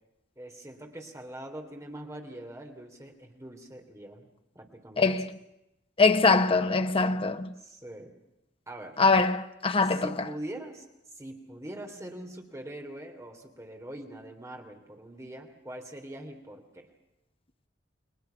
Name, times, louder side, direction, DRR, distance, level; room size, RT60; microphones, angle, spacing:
voice 1, 0.4-4.3 4.5-5.1 7.6-8.1 8.7-9.0 9.8-10.8 11.1-16.9, right 1 dB, 15° right, 3.2 m, -43 dB
voice 2, 5.0-5.4 6.0-7.5 9.0-10.1, left 3 dB, 30° left, 0.9 m, -23 dB
30.0 x 21.5 x 5.8 m
head